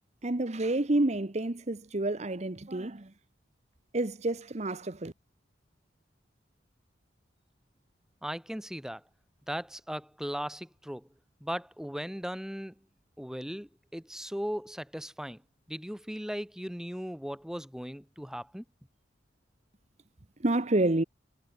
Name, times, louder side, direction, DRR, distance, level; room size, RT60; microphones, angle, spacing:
voice 1, 0.2-3.1 3.9-5.1 20.4-21.0, right 2 dB, 40° right, 1.0 m, -29 dB
voice 2, 8.2-9.0 9.5-11.1 11.4-12.7 13.2-15.4 15.7-18.6, equal, 5° right, 2.4 m, -37 dB
head